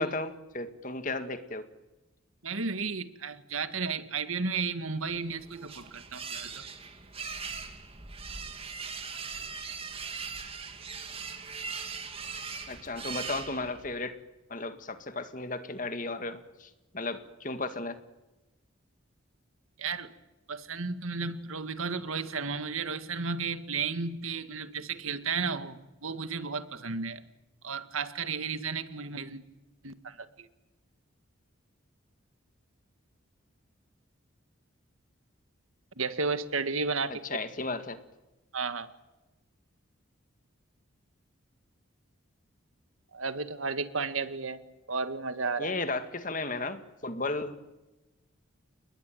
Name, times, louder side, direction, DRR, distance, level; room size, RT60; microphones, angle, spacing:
voice 1, 0.0-1.7 12.7-14.2 14.5-18.0 37.1-38.0 45.6-47.6, left 3 dB, 40° left, 9 dB, 2.0 m, -34 dB
voice 2, 2.4-6.6 19.8-20.1 20.5-27.2 27.6-29.4 29.8-30.5 36.0-37.2 38.5-38.9 43.1-44.6 44.9-45.8, right 4 dB, 85° right, 11 dB, 1.9 m, -33 dB
sound 1, 5.1-14.0, right 5 dB, 30° right, 2.6 m, -40 dB
29.5 x 20.5 x 9.4 m, 1.1 s
head